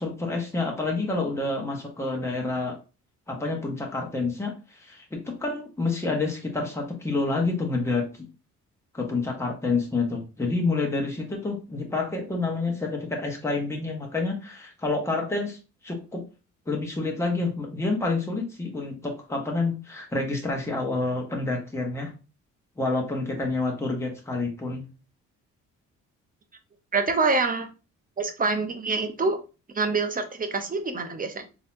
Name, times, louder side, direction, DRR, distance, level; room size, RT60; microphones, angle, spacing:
voice 1, 0.0-2.8 3.3-8.3 8.9-16.2 16.7-22.1 22.8-24.8, left 3 dB, 10° left, 0 dB, 1.1 m, -28 dB
voice 2, 26.9-27.7 28.2-29.4 29.7-31.5, right 3 dB, 30° right, 7 dB, 0.7 m, -26 dB
4.0 x 2.9 x 2.6 m, 0.31 s
cardioid pair, 90°, 30 cm